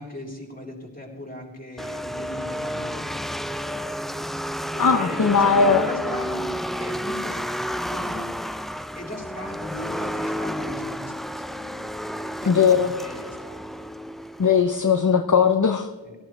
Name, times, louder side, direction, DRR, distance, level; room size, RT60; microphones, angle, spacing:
voice 1, 0.0-3.3 4.7-7.4 7.7-8.3 8.9-11.6 12.4-13.9 16.0-16.2, left 1 dB, 20° left, -1 dB, 3.9 m, -37 dB
sound 1, 1.8-14.8, equal, ahead, 0.5 m, -31 dB
voice 2, 4.8-5.9 12.5-12.9 14.4-15.9, left 6 dB, 45° left, 7 dB, 0.8 m, -19 dB
17.5 x 13.5 x 3.3 m, 1.4 s
wide cardioid pair, 45°, 45 cm